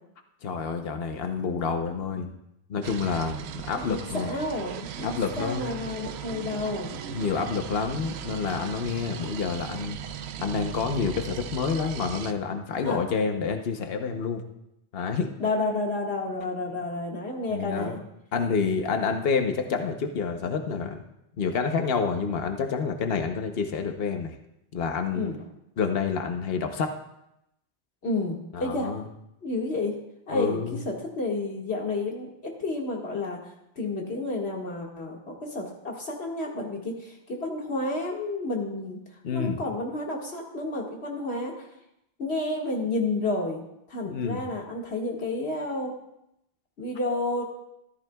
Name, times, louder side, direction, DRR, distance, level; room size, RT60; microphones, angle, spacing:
voice 1, 0.4-2.3 2.7-4.4 5.0-5.8 7.1-10.0 10.4-14.4 14.9-15.3 17.5-18.0 18.3-21.0 21.4-24.3 24.7-25.3 25.8-26.9 28.5-29.0 30.3-30.8 39.2-39.6 44.0-44.4, left 5 dB, 70° left, 5 dB, 1.1 m, -28 dB
sound 1, 2.8-12.3, right 9 dB, 90° right, 0.8 m, -38 dB
voice 2, 3.8-7.0 12.8-13.0 15.4-18.0 25.1-25.3 28.0-28.9 29.4-30.0 30.3-30.6 30.8-33.4 33.8-39.0 39.3-41.7 42.2-43.6 43.9-45.9 46.8-47.4, left 2 dB, 90° left, -1 dB, 2.1 m, -30 dB
13.5 x 12.5 x 2.3 m, 0.82 s
omnidirectional pair, 1.0 m